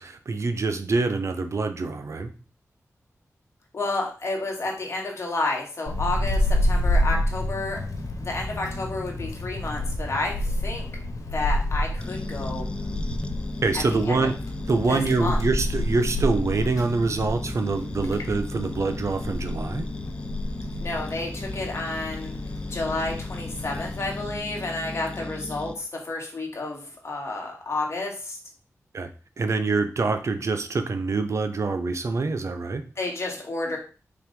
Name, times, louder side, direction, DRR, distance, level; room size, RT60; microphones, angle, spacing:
voice 1, 0.0-2.3 13.6-14.4 14.7-19.9 28.9-29.1 29.4-32.8, right 3 dB, 60° right, 8 dB, 0.8 m, -25 dB
voice 2, 3.7-7.8 8.2-10.9 11.3-12.7 13.9-14.3 14.9-15.4 20.8-22.3 22.7-28.4 33.0-33.8, left 2 dB, 50° left, 0 dB, 2.3 m, -30 dB
Wind, 5.9-24.4, left 1 dB, 85° left, 1.5 m, -29 dB
sound 1, 12.0-25.7, left 2 dB, 20° left, 0.6 m, -36 dB
5.8 x 4.1 x 5.3 m, 0.36 s
wide cardioid pair, 130°, 6 cm